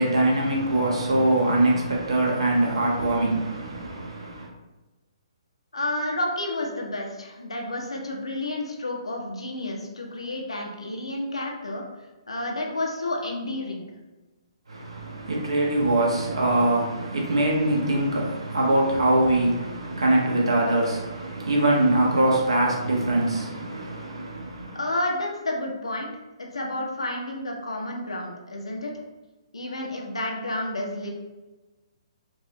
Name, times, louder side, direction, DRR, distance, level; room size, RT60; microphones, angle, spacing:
voice 1, 0.0-4.5 14.7-24.8, right 1 dB, 65° right, -3 dB, 1.2 m, -23 dB
voice 2, 5.7-11.8 12.3-13.8 24.7-26.1 26.4-28.9 29.5-31.1, left 1 dB, 75° left, 0 dB, 0.8 m, -30 dB
4.6 x 2.6 x 3.0 m, 1.1 s
figure-of-eight pair, 130°, 3 cm